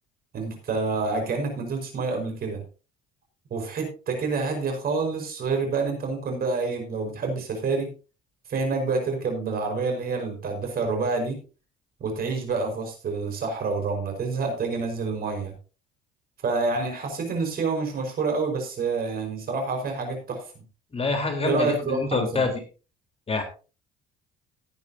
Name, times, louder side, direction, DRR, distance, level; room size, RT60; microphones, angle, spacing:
voice 1, 0.3-2.6 3.5-7.9 8.5-11.4 12.0-15.6 16.4-20.6 21.4-22.5, right 4 dB, 50° right, 4 dB, 5.2 m, -28 dB
voice 2, 20.9-22.5 23.3-23.4, left 3 dB, 30° left, 4 dB, 4.0 m, -26 dB
17.0 x 9.9 x 2.8 m, 0.34 s
hypercardioid pair, 70°, 19 cm